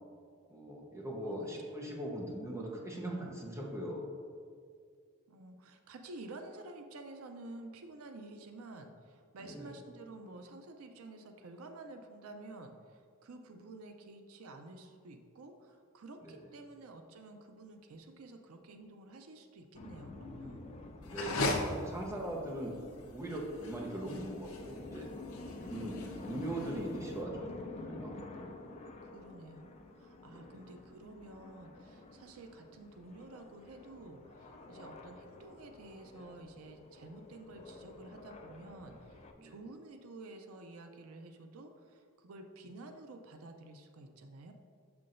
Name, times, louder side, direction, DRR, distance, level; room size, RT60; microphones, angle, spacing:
voice 1, 0.5-4.1 9.4-9.8 16.2-16.4 21.0-22.8 23.0-25.1 25.6-27.5 27.7-28.1 30.3-30.6 39.4-39.6, right 1 dB, 15° right, -2 dB, 0.7 m, -40 dB
voice 2, 5.3-20.7 25.7-26.4 29.0-44.5, right 2 dB, 90° right, 6 dB, 0.5 m, -51 dB
sound 1, 19.8-39.3, left 2 dB, 30° left, 0.3 m, -49 dB
sound 2, 21.0-27.2, left 2 dB, 85° left, 0.7 m, -38 dB
6.6 x 5.8 x 2.5 m, 2.1 s
head